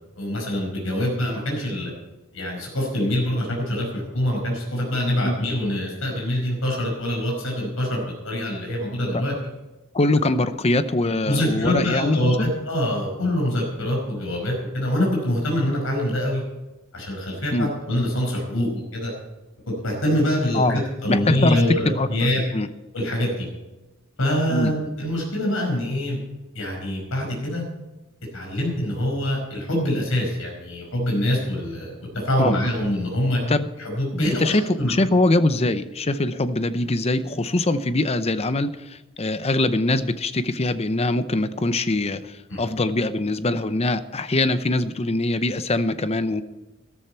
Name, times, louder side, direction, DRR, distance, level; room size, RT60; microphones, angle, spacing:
voice 1, 0.2-1.9 2.3-9.3 11.3-16.4 16.9-19.1 19.8-22.4 22.9-23.5 24.2-26.2 26.5-27.6 28.3-33.4 33.8-34.9 42.5-42.6, left 1 dB, 70° left, -1 dB, 5.1 m, -25 dB
voice 2, 9.9-12.4 17.5-17.7 20.5-20.8 21.1-22.1 22.5-22.7 24.5-24.7 32.4-32.6 33.5-33.7 34.1-46.4, left 2 dB, 30° left, 12 dB, 0.7 m, -23 dB
13.5 x 13.0 x 4.5 m, 1.1 s
head